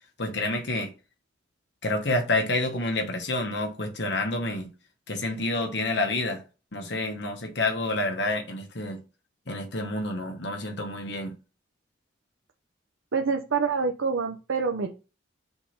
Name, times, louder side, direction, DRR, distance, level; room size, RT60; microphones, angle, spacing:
voice 1, 0.2-0.9 1.8-4.7 5.1-6.4 6.7-9.0 9.5-11.3, left 2 dB, 60° left, 1.2 m, -28 dB
voice 2, 13.1-14.9, right 5 dB, 90° right, 0.7 m, -26 dB
5.7 x 3.9 x 5.8 m
head